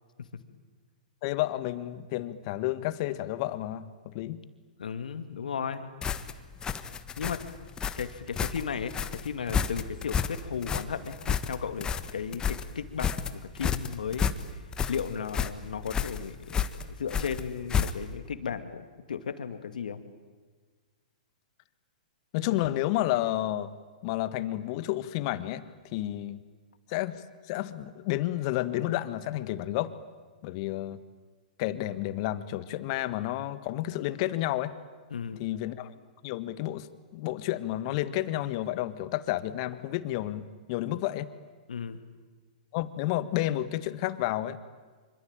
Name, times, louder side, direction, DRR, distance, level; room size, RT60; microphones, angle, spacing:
voice 1, 1.2-4.4 22.3-23.7 24.0-25.6 25.9-26.4 26.9-29.9 30.4-31.0 31.6-34.7 35.4-35.9 36.2-36.9 37.1-41.3 42.7-44.6, left 15 dB, 45° left, 14 dB, 1.6 m, -31 dB
voice 2, 4.8-5.9 7.2-7.4 8.0-11.9 12.1-14.3 14.9-16.6 16.9-20.0 35.1-35.4 41.7-42.0, left 7 dB, 75° left, 10 dB, 2.3 m, -35 dB
sound 1, 6.0-18.2, left 7 dB, 15° left, 1.4 m, -31 dB
26.0 x 25.0 x 9.0 m, 1.4 s
hypercardioid pair, 120°, 4 cm